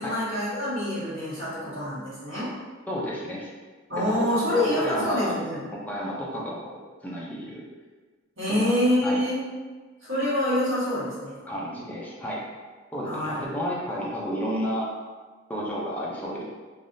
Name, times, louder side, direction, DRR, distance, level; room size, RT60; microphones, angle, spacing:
voice 1, 0.0-2.5 3.9-5.6 8.4-9.4 10.0-11.4 13.0-13.4, left 1 dB, 70° right, -10 dB, 1.5 m, -26 dB
voice 2, 2.9-3.5 4.0-5.4 5.7-7.6 8.5-8.8 9.0-9.2 11.5-12.4 12.9-14.9 15.5-16.4, equal, 10° left, -5 dB, 0.5 m, -32 dB
3.4 x 2.4 x 2.6 m, 1.4 s
head